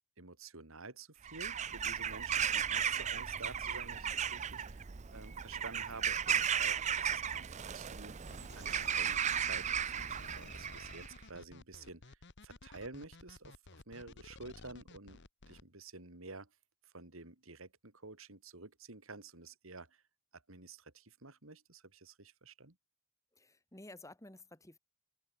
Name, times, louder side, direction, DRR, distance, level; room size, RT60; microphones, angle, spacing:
voice 1, 0.2-8.1 8.5-15.2 15.5-16.5 16.8-20.0 20.3-22.7, right 3 dB, 75° right, 3.2 m, -51 dB
Bird vocalization bird call bird song / Crow, 1.2-11.1, right 8 dB, 35° right, 0.5 m, -35 dB
sound 1, 8.3-15.6, left 3 dB, 55° left, 1.5 m, -54 dB
voice 2, 23.3-24.8, left 2 dB, 15° left, 3.2 m, -53 dB
open air
head